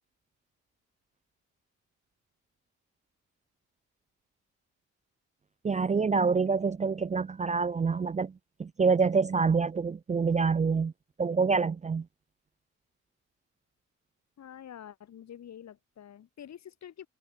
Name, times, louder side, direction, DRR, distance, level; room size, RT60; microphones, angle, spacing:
voice 1, 5.6-8.3 8.6-10.9 11.2-12.1, right 5 dB, 25° right, 0.6 m, -26 dB
voice 2, 14.4-17.1, left 9 dB, 65° left, 6.4 m, -47 dB
cardioid pair, 90°, 30 cm